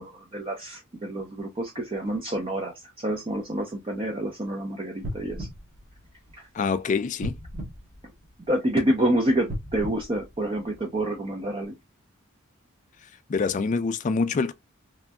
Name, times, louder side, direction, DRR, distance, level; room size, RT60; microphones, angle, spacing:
voice 1, 0.0-5.5 6.4-6.5 8.5-11.7, right 1 dB, 25° right, 0.4 m, -28 dB
sound 1, 5.0-6.7 7.2-8.7 9.4-11.1 11.6-11.7, equal, 40° right, 1.0 m, -37 dB
voice 2, 6.5-7.3 13.3-14.5, left 4 dB, 35° left, 0.3 m, -25 dB
3.0 x 2.6 x 2.2 m
head